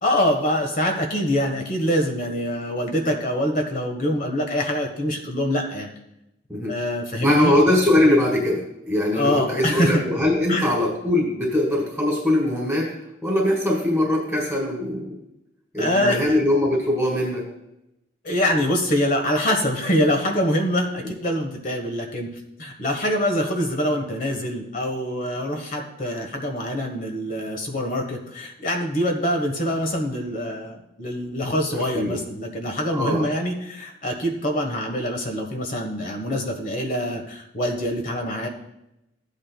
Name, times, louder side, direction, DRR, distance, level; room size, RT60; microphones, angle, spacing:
voice 1, 0.0-5.9 6.7-7.6 9.1-10.0 10.5-10.7 15.8-16.4 18.2-22.3 22.6-38.5, equal, 45° left, 3 dB, 1.3 m, -24 dB
voice 2, 7.2-12.9 13.2-15.2 15.7-17.5 21.0-21.1 31.7-32.2 32.9-33.3, left 1 dB, 5° right, -3 dB, 1.7 m, -21 dB
14.0 x 8.7 x 2.3 m, 0.86 s
head